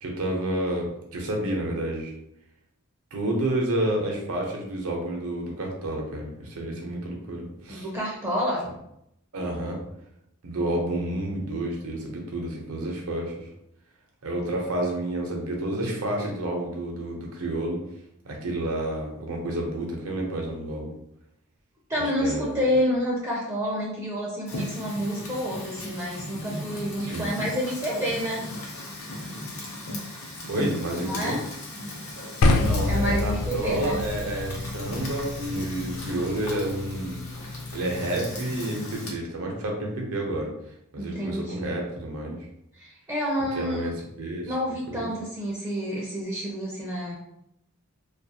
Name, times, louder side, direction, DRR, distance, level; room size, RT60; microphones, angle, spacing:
voice 1, 0.0-2.1 3.1-7.9 9.3-9.8 10.4-13.5 14.2-17.8 18.2-20.9 22.0-22.6 27.0-27.3 30.5-31.4 32.2-32.3 32.6-40.5 40.9-42.4 43.6-44.5 44.9-45.1, right 1 dB, 75° right, 0 dB, 0.7 m, -30 dB
voice 2, 7.7-8.6 21.9-28.4 31.1-31.4 32.9-34.0 41.0-41.8 42.7-43.9 44.5-47.2, equal, 15° right, -4 dB, 0.4 m, -29 dB
Fire, 24.5-39.1, left 1 dB, 70° left, 0.7 m, -37 dB
sound 1, 32.4-38.5, left 2 dB, 85° left, 0.3 m, -28 dB
2.4 x 2.4 x 2.7 m, 0.79 s
head